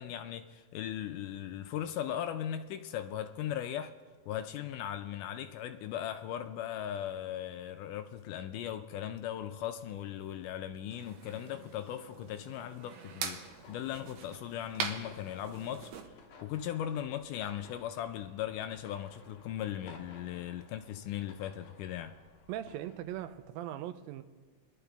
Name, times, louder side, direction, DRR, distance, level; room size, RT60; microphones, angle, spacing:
voice 1, 0.0-4.0 4.3-13.4 13.7-15.9 16.4-22.1, left 10 dB, 80° left, 1.9 m, -38 dB
sound 1, 10.9-16.1, right 6 dB, 70° right, 2.3 m, -43 dB
sound 2, 13.4-23.5, left 3 dB, 65° left, 2.1 m, -57 dB
voice 2, 22.5-24.2, right 12 dB, 90° right, 2.4 m, -39 dB
23.0 x 11.0 x 3.4 m
omnidirectional pair, 4.1 m